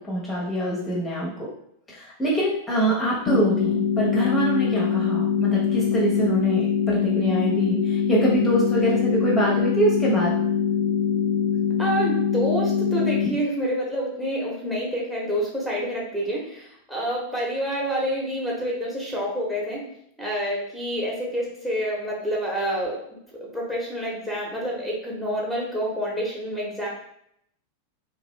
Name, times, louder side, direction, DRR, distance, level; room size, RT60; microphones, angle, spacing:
voice 1, 0.1-1.5 1.9-10.3, right 1 dB, 15° left, -5 dB, 0.9 m, -24 dB
sound 1, 3.3-13.3, left 7 dB, 40° left, 0.5 m, -23 dB
voice 2, 11.8-19.9 20.2-23.0 23.5-26.9, equal, 5° right, -4 dB, 1.0 m, -28 dB
2.9 x 2.5 x 2.9 m, 0.72 s
figure-of-eight pair, 90°, 0 cm